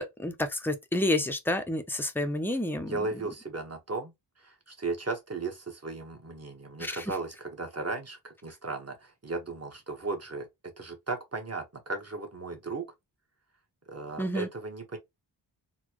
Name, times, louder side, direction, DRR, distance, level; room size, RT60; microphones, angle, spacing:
voice 1, 0.0-3.1 6.8-7.0 14.2-14.5, left 1 dB, 5° left, 0.6 m, -29 dB
voice 2, 2.8-4.1 4.4-10.5 10.8-12.9 13.9-15.0, right 3 dB, 30° right, 1.1 m, -36 dB
4.0 x 2.2 x 2.9 m
wide cardioid pair, 70°, 46 cm